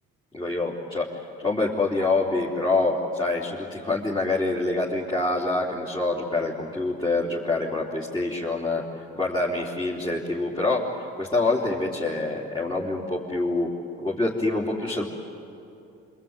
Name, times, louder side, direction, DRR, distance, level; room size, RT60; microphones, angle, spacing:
voice 1, 0.3-1.1 1.4-8.8 9.2-13.7 14.0-15.0, left 2 dB, 15° left, -5 dB, 4.0 m, -26 dB
26.5 x 24.0 x 9.2 m, 2.8 s
supercardioid pair, 80°, 31 cm